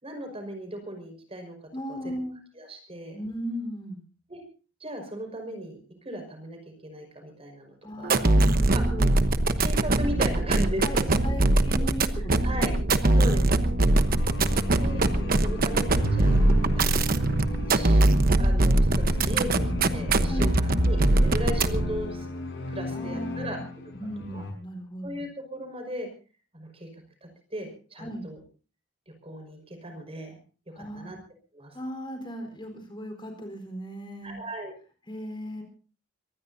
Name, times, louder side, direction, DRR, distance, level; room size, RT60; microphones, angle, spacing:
voice 1, 0.0-1.6 1.9-2.2 2.5-3.2 4.3-4.4 4.8-8.2 8.7-8.8 9.6-11.5 11.8-11.9 12.4-12.7 13.2-14.2 14.8-15.1 15.4-16.4 16.8-17.3 17.6-19.7 19.9-22.3 22.7-23.9 24.3-24.4 25.0-26.1 26.5-26.9 27.5-28.4 29.2-30.4 30.8-31.2 31.5-31.8 34.2-34.7, equal, 30° right, 5 dB, 5.3 m, -37 dB
voice 2, 1.7-2.4 3.1-4.0 7.8-9.1 10.8-12.7 13.0-13.4 19.2-19.5 20.3-20.5 22.9-23.6 23.9-25.2 28.0-28.3 30.7-31.1 31.7-34.4 35.1-35.6, equal, 25° left, 5 dB, 4.2 m, -37 dB
sound 1, 8.0-22.0, right 2 dB, 50° right, 1.1 m, -22 dB
sound 2, 13.6-24.5, left 2 dB, 65° left, 6.3 m, -35 dB
24.5 x 19.5 x 2.7 m, 0.36 s
head